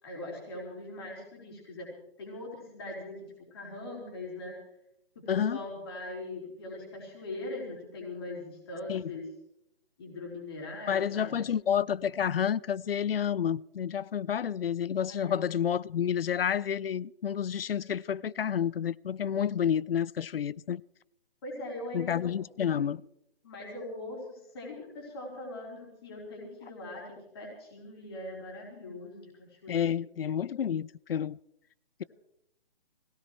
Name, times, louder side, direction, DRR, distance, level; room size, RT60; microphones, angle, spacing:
voice 1, 0.0-1.9 2.2-3.1 3.5-4.5 5.3-9.2 10.0-11.5 15.1-15.3 17.7-17.8 21.4-22.8 23.4-27.0 27.3-29.9, left 2 dB, 25° left, 3.9 m, -41 dB
voice 2, 5.3-5.6 8.9-9.1 10.9-20.8 21.9-23.0 29.7-31.4, left 8 dB, 70° left, 0.5 m, -30 dB
21.0 x 17.0 x 3.1 m
hypercardioid pair, 175°, 30 cm